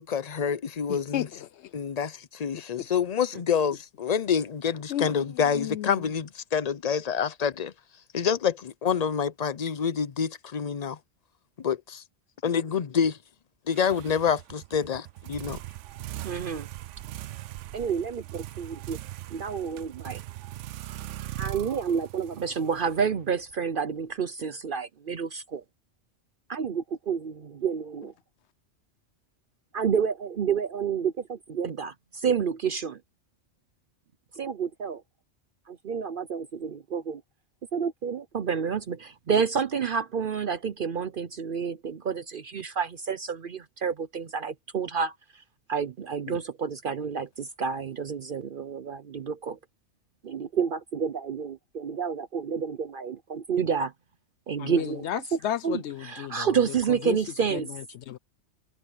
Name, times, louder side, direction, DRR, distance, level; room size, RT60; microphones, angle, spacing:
voice 1, 0.0-1.3 1.7-7.7 8.1-11.0 11.6-12.0 12.4-13.2 13.7-15.6, left 7 dB, 45° left, 0.6 m, -27 dB
voice 2, 0.9-1.7 2.8-2.9 4.9-6.1 46.3-46.4 54.6-56.5 56.9-57.2 57.5-58.2, left 11 dB, 70° left, 0.8 m, -34 dB
sound 1, 13.7-23.5, right 14 dB, 80° right, 0.9 m, -40 dB
voice 3, 16.2-16.7 17.7-19.0 19.3-20.2 21.4-25.6 26.5-28.1 29.7-33.0 34.4-35.0 35.7-37.2 37.7-45.1 45.7-49.6 50.2-53.9 54.5-55.1 55.3-55.4 55.6-57.7, right 6 dB, 55° right, 0.8 m, -29 dB
omnidirectional pair, 1.2 m